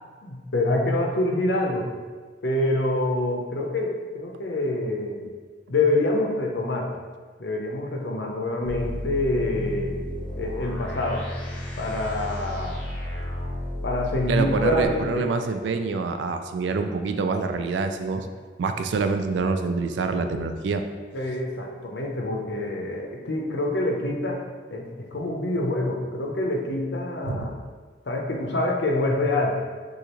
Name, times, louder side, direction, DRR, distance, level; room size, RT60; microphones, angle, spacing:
voice 1, 0.2-1.9 2.4-5.2 5.7-6.9 7.4-10.0 10.4-11.3 11.8-12.8 13.8-15.3 21.1-24.4 24.7-27.5 28.0-29.6, left 2 dB, 70° left, 0 dB, 0.7 m, -26 dB
sound 1, 8.7-14.9, left 1 dB, 10° left, 0.7 m, -32 dB
voice 2, 14.3-18.3 18.6-20.9 27.3-27.5, right 4 dB, 75° right, 7 dB, 0.3 m, -26 dB
6.3 x 2.4 x 2.9 m, 1.5 s
head